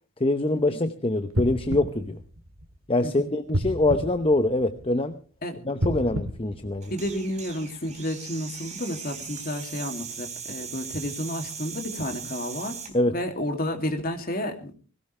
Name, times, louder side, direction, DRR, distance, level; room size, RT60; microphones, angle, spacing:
voice 1, 0.2-2.2 2.9-5.2 5.6-6.9 12.9-13.1, left 2 dB, 25° left, 9 dB, 0.8 m, -24 dB
sound 1, 1.3-3.0 3.5-5.1 5.7-7.4 8.0-8.1, equal, 70° right, 2.2 m, -31 dB
voice 2, 3.0-3.3 5.4-5.6 6.9-12.8 13.1-14.7, left 1 dB, 45° left, 5 dB, 2.6 m, -31 dB
sound 2, 6.8-12.9, right 6 dB, 35° right, 3.8 m, -39 dB
19.5 x 18.0 x 3.3 m, 0.38 s
head